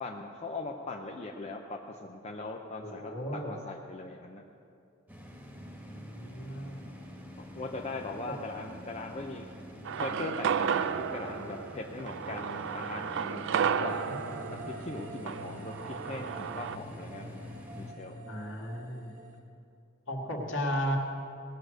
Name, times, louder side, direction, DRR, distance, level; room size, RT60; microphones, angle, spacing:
voice 1, 0.0-4.4 7.4-9.5 10.0-14.1 14.5-17.4 17.8-18.2, left 3 dB, 30° left, 1 dB, 0.6 m, -40 dB
voice 2, 2.8-3.5 5.8-6.9 13.6-13.7 14.1-14.4 18.3-19.1 20.1-21.0, equal, 65° left, -1 dB, 1.9 m, -35 dB
sound 1, 5.1-17.9, equal, 10° right, 1.5 m, -47 dB
sound 2, 9.9-16.8, right 7 dB, 60° right, 0.4 m, -33 dB
sound 3, 13.9-19.4, right 1 dB, 40° right, 1.3 m, -46 dB
18.5 x 6.4 x 6.3 m, 2.5 s
head